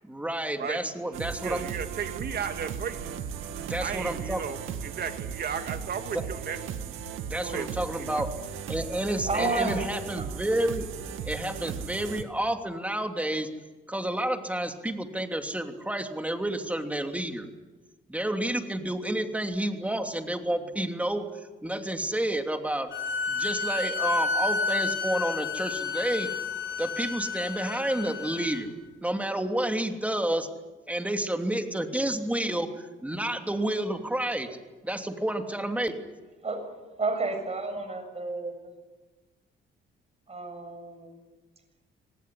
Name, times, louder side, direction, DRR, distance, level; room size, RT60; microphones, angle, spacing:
voice 1, 0.0-1.6 3.7-4.4 6.1-6.2 7.3-8.3 8.7-10.9 11.3-13.5 13.9-17.5 18.1-21.2 21.6-22.9 23.3-26.3 26.8-28.7 29.0-30.5 30.9-34.5 34.8-36.0, right 1 dB, 5° right, 5 dB, 3.0 m, -30 dB
sound 1, 1.1-12.2, right 7 dB, 90° right, 2.2 m, -37 dB
voice 2, 1.2-3.1 3.8-6.6 7.4-8.5, right 7 dB, 55° right, 6 dB, 2.5 m, -35 dB
voice 3, 9.2-10.5 36.4-36.6 37.0-38.7 40.3-41.2, right 3 dB, 30° right, 7 dB, 7.1 m, -31 dB
sound 2, 22.9-28.6, left 4 dB, 70° left, 6.9 m, -30 dB
25.0 x 19.5 x 9.6 m, 1.2 s
cardioid pair, 90°, 20 cm